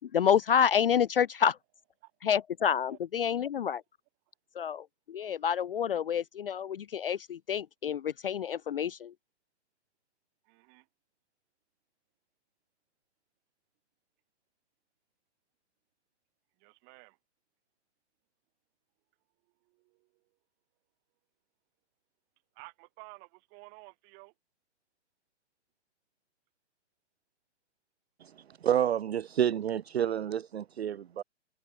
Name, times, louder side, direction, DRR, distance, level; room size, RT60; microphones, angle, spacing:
voice 1, 0.1-1.6 2.2-3.8 4.6-9.1, left 8 dB, 55° left, 0.4 m, -28 dB
voice 2, 10.4-10.9 16.6-17.2 19.6-20.2 22.5-24.3, right 37 dB, 25° right, 4.9 m, -53 dB
voice 3, 28.6-31.2, right 9 dB, 60° right, 0.6 m, -29 dB
open air
figure-of-eight pair, 125°, 35 cm